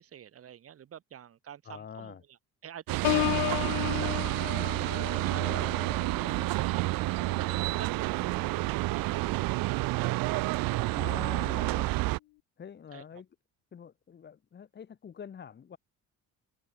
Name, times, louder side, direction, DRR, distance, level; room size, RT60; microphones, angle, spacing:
voice 1, 0.0-2.2 2.6-4.8 5.1-6.9 7.3-11.2 12.9-13.0, right 9 dB, 45° right, 5.2 m, -48 dB
voice 2, 1.6-2.2 5.2-5.9 10.9-12.0 12.6-13.3 13.7-15.8, left 7 dB, 30° left, 2.2 m, -45 dB
sound 1, 2.9-12.2, right 21 dB, 85° right, 0.6 m, -29 dB
Piano, 3.0-8.7 9.1-9.5, left 22 dB, 85° left, 0.5 m, -35 dB
cardioid pair, 160°, 33 cm